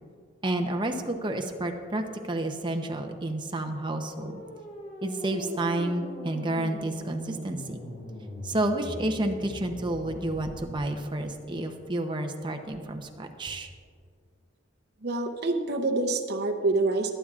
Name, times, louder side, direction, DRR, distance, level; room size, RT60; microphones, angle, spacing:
voice 1, 0.4-4.4 5.0-7.8 8.4-13.7, right 1 dB, 25° right, 5 dB, 0.7 m, -30 dB
sound 1, 3.8-10.9, equal, 60° left, 2.1 m, -41 dB
voice 2, 15.0-17.1, right 2 dB, 55° right, 1 dB, 0.7 m, -26 dB
22.5 x 8.8 x 2.4 m, 2.1 s
head